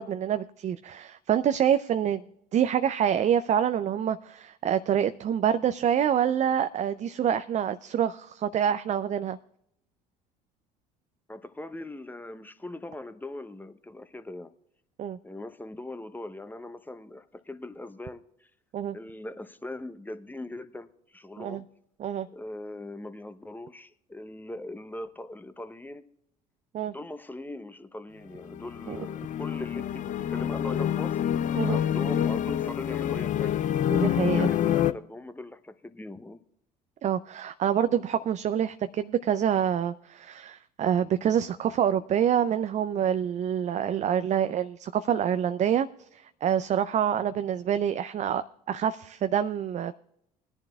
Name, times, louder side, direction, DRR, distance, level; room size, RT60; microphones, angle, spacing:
voice 1, 0.0-2.2 2.5-9.4 15.0-15.2 18.7-19.0 21.4-21.6 22.0-22.3 26.7-26.9 28.9-29.0 31.5-31.8 33.9-34.5 37.0-45.9 46.1-48.4 48.7-49.9, right 9 dB, 35° right, 0.5 m, -26 dB
voice 2, 11.3-14.5 15.2-18.5 18.9-21.6 22.3-26.0 26.9-31.2 31.6-33.6 34.3-36.4, left 2 dB, 10° left, 0.8 m, -40 dB
sound 1, 28.4-34.9, left 10 dB, 40° left, 0.5 m, -27 dB
20.5 x 10.5 x 2.3 m
hypercardioid pair, 60°, 20 cm